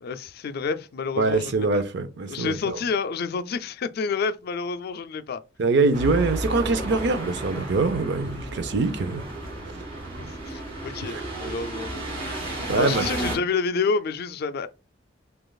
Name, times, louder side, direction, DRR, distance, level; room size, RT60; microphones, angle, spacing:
voice 1, 0.0-1.8 2.3-5.4 10.1-12.4 12.8-14.7, left 5 dB, 55° left, 0.4 m, -29 dB
voice 2, 1.2-2.8 5.6-9.2 11.1-11.2 12.7-13.1, right 3 dB, 65° right, 0.6 m, -24 dB
sound 1, 5.9-13.4, right 1 dB, 35° right, 2.2 m, -32 dB
6.2 x 2.4 x 2.3 m
head